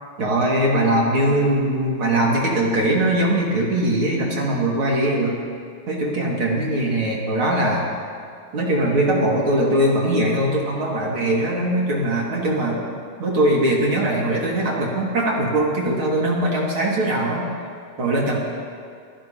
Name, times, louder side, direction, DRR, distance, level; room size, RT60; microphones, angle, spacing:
voice 1, 0.2-5.3 5.9-7.8 8.5-12.8 13.2-17.5 18.0-18.4, right 1 dB, 45° right, -3 dB, 2.9 m, -21 dB
26.0 x 15.0 x 2.9 m, 2.2 s
omnidirectional pair, 3.4 m